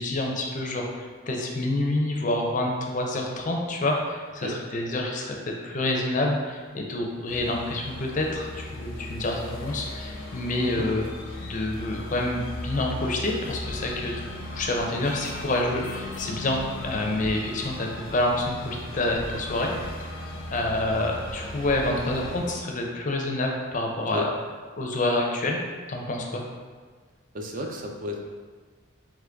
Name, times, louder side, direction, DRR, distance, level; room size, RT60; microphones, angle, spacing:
voice 1, 0.0-11.0 11.4-14.2 14.5-19.7 20.5-24.2 24.8-25.6 25.9-26.4, left 2 dB, 40° left, 1 dB, 0.5 m, -28 dB
sound 1, 7.3-22.6, left 1 dB, 80° left, 0.7 m, -37 dB
voice 2, 27.3-28.2, left 1 dB, 40° right, 1 dB, 0.4 m, -33 dB
3.8 x 3.2 x 3.4 m, 1.5 s
head